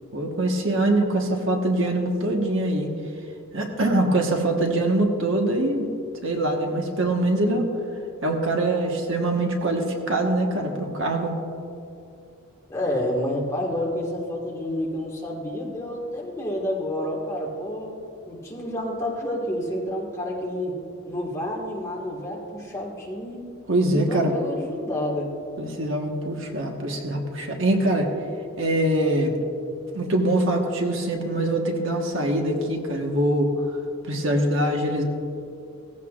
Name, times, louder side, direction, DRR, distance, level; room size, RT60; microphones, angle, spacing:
voice 1, 0.1-2.9 3.5-5.9 6.2-7.7 8.2-11.3 23.7-24.3 25.6-28.1 28.6-29.4 29.9-33.5 34.0-35.0, right 1 dB, 60° right, 1 dB, 1.3 m, -23 dB
voice 2, 12.7-17.9 18.3-20.8 21.1-23.4 23.9-25.3, left 1 dB, 15° left, -2 dB, 1.8 m, -29 dB
17.5 x 15.0 x 2.5 m, 2.5 s
head